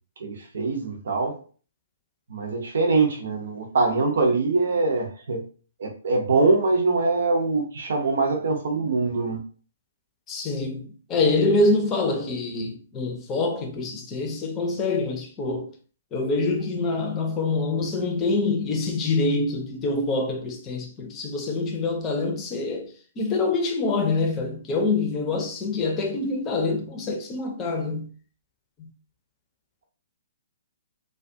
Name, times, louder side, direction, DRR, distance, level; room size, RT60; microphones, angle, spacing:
voice 1, 0.2-1.4 2.3-5.4 5.8-9.4, right 3 dB, 65° right, 0.6 m, -23 dB
voice 2, 10.3-15.7 16.1-22.9 23.2-28.1 28.8-28.9, left 3 dB, 25° left, 0.6 m, -25 dB
2.3 x 2.3 x 2.6 m
figure-of-eight pair, 125°, 0 cm